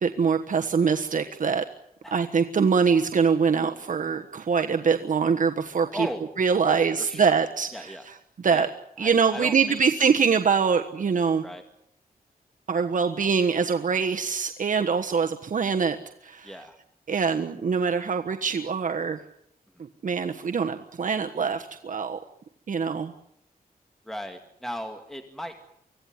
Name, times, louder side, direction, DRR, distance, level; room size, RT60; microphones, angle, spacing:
voice 1, 0.0-1.6 2.1-6.1 6.4-7.9 8.4-8.7 9.0-11.4 12.7-16.0 16.2-16.5 17.1-19.2 19.8-22.2 22.7-23.1, right 6 dB, 60° right, 5 dB, 1.3 m, -24 dB
voice 2, 5.9-6.2 6.7-7.3 7.7-8.1 8.5-8.7 9.0-9.8 11.4-11.6 16.4-16.8 19.7-19.9 24.0-25.6, equal, ahead, 5 dB, 2.1 m, -36 dB
25.0 x 16.5 x 9.6 m, 0.76 s
wide cardioid pair, 100°, 15 cm